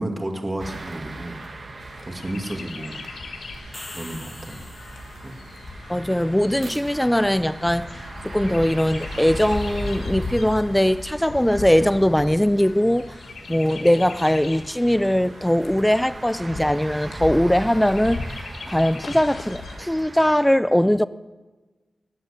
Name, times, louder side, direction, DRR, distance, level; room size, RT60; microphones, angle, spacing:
voice 1, 0.0-1.4 2.0-3.0 3.9-4.6 5.2-5.4, right 1 dB, 25° right, 2.3 m, -31 dB
sound 1, 0.6-20.4, right 3 dB, 55° right, 1.8 m, -41 dB
Chirp tweet, 1.8-19.8, left 3 dB, 85° left, 1.5 m, -37 dB
sound 2, 3.5-5.5, left 1 dB, 20° left, 1.5 m, -42 dB
voice 2, 5.9-13.2 13.5-21.1, equal, 5° left, 0.5 m, -20 dB
19.0 x 7.7 x 8.4 m
cardioid pair, 70°, 0 cm